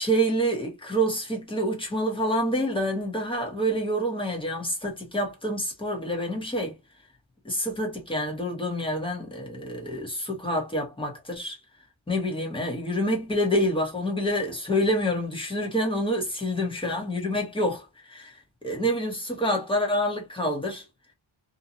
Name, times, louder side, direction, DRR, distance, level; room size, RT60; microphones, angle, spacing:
voice 1, 0.0-6.8 7.4-11.6 12.1-20.8, equal, 10° left, 0.9 m, -27 dB
2.6 x 2.2 x 2.7 m
wide cardioid pair, 170°, 48 cm